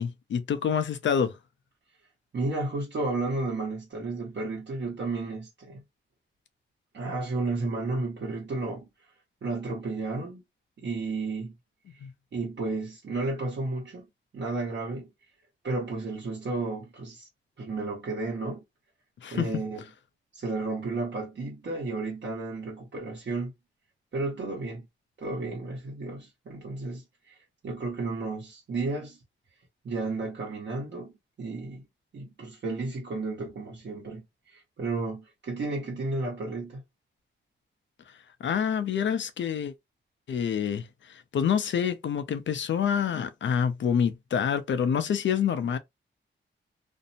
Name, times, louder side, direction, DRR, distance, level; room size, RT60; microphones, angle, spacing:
voice 1, 0.0-1.3 12.0-12.1 19.2-19.5 38.4-39.7 40.3-45.8, left 7 dB, 65° left, 0.5 m, -27 dB
voice 2, 2.3-5.8 6.9-8.9 9.4-10.4 10.8-11.5 12.3-14.0 14.3-15.1 15.6-17.3 17.6-18.6 19.3-19.8 20.3-23.5 24.1-24.9 25.2-27.4 27.6-29.2 29.8-31.9 32.1-36.8, right 3 dB, 60° right, 1.0 m, -32 dB
2.6 x 2.0 x 2.7 m
wide cardioid pair, 105°, 20 cm